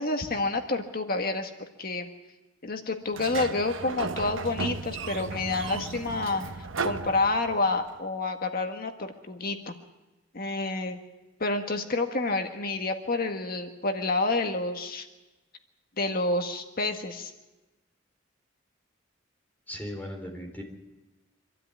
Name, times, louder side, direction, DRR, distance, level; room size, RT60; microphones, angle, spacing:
voice 1, 0.0-1.5 1.8-2.1 2.6-9.7 10.3-11.0 11.4-15.0 16.0-17.3, left 2 dB, 50° left, 5 dB, 1.6 m, -29 dB
Sliding door, 3.1-7.8, right 4 dB, 80° right, 0.9 m, -35 dB
voice 2, 19.7-20.6, equal, 10° left, 1 dB, 4.2 m, -37 dB
25.5 x 12.5 x 9.5 m, 1.1 s
head